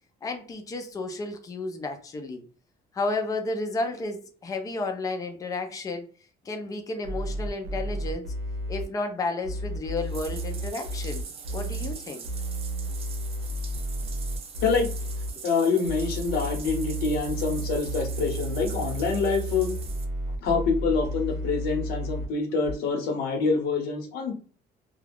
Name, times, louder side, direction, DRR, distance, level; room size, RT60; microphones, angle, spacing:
voice 1, 0.2-2.4 2.9-6.0 6.4-8.3 8.7-11.2 11.5-12.3 15.4-15.5, left 2 dB, 20° left, 4 dB, 0.5 m, -32 dB
sound 1, 7.0-8.8 9.4-11.9 12.2-15.3 15.8-22.3 22.6-22.7, right 1 dB, 65° right, 0.8 m, -32 dB
Bathtub (filling or washing), 10.0-20.0, right 6 dB, 35° right, 0.5 m, -43 dB
voice 2, 14.6-14.9 15.4-19.7 20.4-24.3, left 4 dB, 70° left, 3 dB, 0.9 m, -26 dB
2.4 x 2.3 x 3.4 m, 0.43 s
cardioid pair, 160°, 17 cm